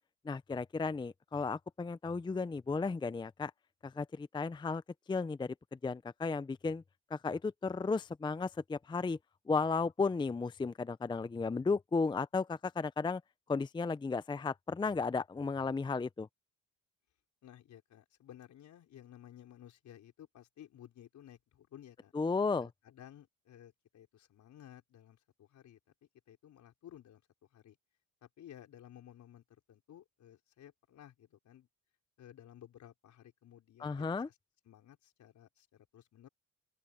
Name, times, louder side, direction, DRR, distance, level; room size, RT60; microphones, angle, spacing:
voice 1, 0.2-3.5 3.8-4.8 5.1-6.8 7.1-9.2 9.5-13.2 13.5-16.3 22.1-22.7 33.8-34.3, left 4 dB, 15° left, 0.5 m, -34 dB
voice 2, 17.4-22.1 22.6-27.2 27.5-27.8 28.2-31.7 32.2-34.3 34.6-36.3, left 11 dB, 70° left, 5.1 m, -56 dB
open air
cardioid pair, 90°, 30 cm